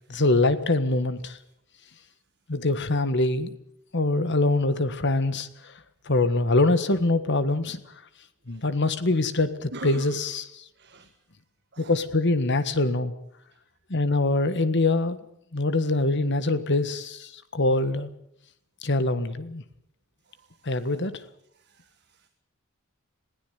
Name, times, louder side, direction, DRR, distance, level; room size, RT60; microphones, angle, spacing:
voice 1, 0.1-1.4 2.5-3.6 3.9-5.7 6.1-7.8 8.5-10.6 11.8-13.1 13.9-15.2 15.5-18.1 18.8-19.6 20.6-21.1, left 2 dB, 55° left, 13 dB, 1.6 m, -24 dB
voice 2, 9.7-10.4 10.7-11.2 11.7-12.0 13.5-13.6 20.2-20.9 21.5-22.3, right 2 dB, 50° right, 8 dB, 1.5 m, -45 dB
21.0 x 16.0 x 9.4 m, 0.76 s
head